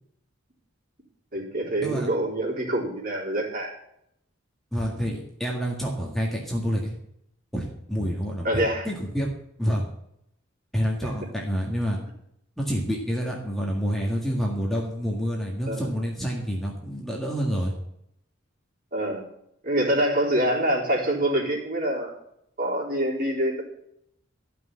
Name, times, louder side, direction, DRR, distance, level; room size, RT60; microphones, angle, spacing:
voice 1, 1.3-3.7 8.4-8.9 11.0-11.1 15.7-15.9 18.9-19.2 19.6-22.1 22.6-23.6, right 1 dB, 45° right, -2 dB, 4.0 m, -25 dB
voice 2, 4.7-6.9 7.5-9.3 9.6-9.8 10.7-12.0 12.6-17.8, equal, ahead, -2 dB, 1.8 m, -28 dB
14.0 x 6.0 x 8.4 m, 0.76 s
head